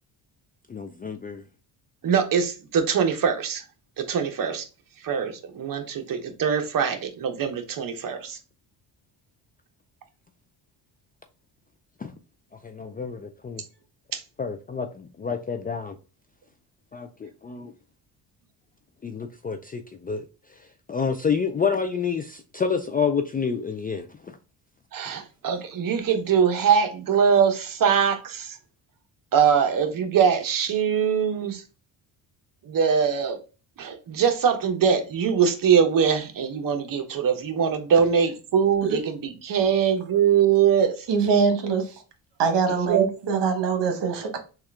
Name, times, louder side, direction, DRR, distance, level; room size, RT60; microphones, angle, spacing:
voice 1, 0.7-1.4 12.0-12.1 12.6-13.6 14.4-16.0 16.9-17.7 19.0-20.3 20.9-24.4, left 6 dB, 20° left, 0.3 m, -28 dB
voice 2, 2.0-3.6 4.0-4.6 5.0-8.4 14.1-14.2 24.9-28.6 29.3-31.6 32.7-33.4 33.8-41.1 42.7-43.4, right 7 dB, 45° right, 0.9 m, -22 dB
voice 3, 41.1-41.9 42.4-44.4, right 5 dB, 65° right, 1.1 m, -23 dB
3.6 x 2.4 x 3.3 m
cardioid pair, 85°, 45 cm